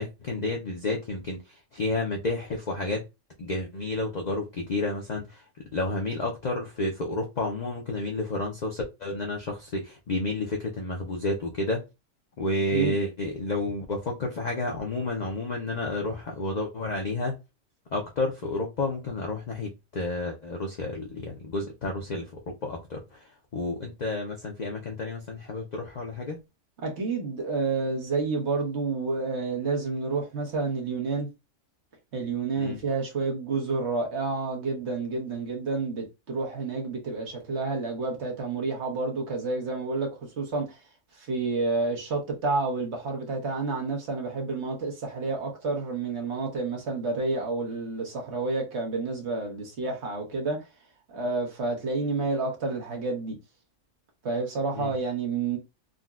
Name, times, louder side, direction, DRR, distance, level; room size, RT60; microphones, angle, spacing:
voice 1, 0.0-3.0 3.4-11.8 12.4-17.3 17.9-26.4 32.6-32.8 54.7-54.9, left 2 dB, 60° left, 0.4 m, -31 dB
voice 2, 26.8-31.3 32.1-40.1 40.4-40.7 41.2-50.6 51.1-53.3 54.2-55.6, right 3 dB, 60° right, 1.2 m, -29 dB
3.8 x 2.1 x 2.3 m
omnidirectional pair, 1.4 m